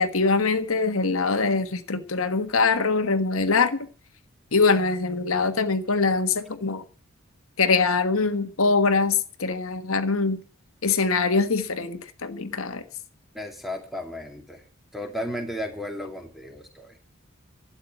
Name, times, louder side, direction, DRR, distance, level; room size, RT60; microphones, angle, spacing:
voice 1, 0.0-3.9 4.5-6.8 7.6-10.4 10.8-12.8, left 4 dB, 80° left, 1.3 m, -23 dB
voice 2, 13.3-14.6 14.9-17.0, left 1 dB, ahead, 2.3 m, -34 dB
12.5 x 8.8 x 9.3 m
head